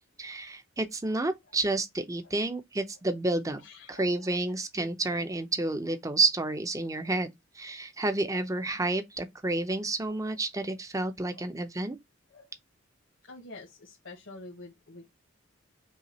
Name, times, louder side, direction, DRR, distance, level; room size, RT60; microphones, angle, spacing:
voice 1, 0.2-3.6 3.9-7.3 7.6-12.0, right 2 dB, 15° right, 0.6 m, -30 dB
voice 2, 1.2-1.6 2.2-2.3 3.6-4.6 5.8-5.9 7.0-7.1 10.2-10.4 11.3-11.5 12.3-12.5 13.2-15.1, left 2 dB, 70° left, 1.3 m, -49 dB
5.5 x 2.4 x 2.9 m
head